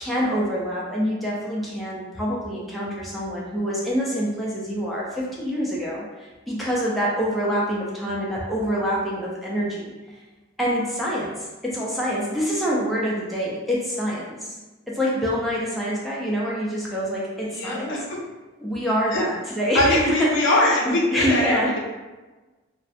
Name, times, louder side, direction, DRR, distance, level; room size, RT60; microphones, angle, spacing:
voice 1, 0.0-9.9 10.6-14.6 14.9-17.9 18.6-20.5 20.9-21.8, equal, ahead, -6 dB, 0.4 m, -26 dB
voice 2, 17.5-18.2 19.1-19.2 19.7-21.8, left 1 dB, 65° left, -3 dB, 0.6 m, -22 dB
2.4 x 2.0 x 2.5 m, 1.2 s
head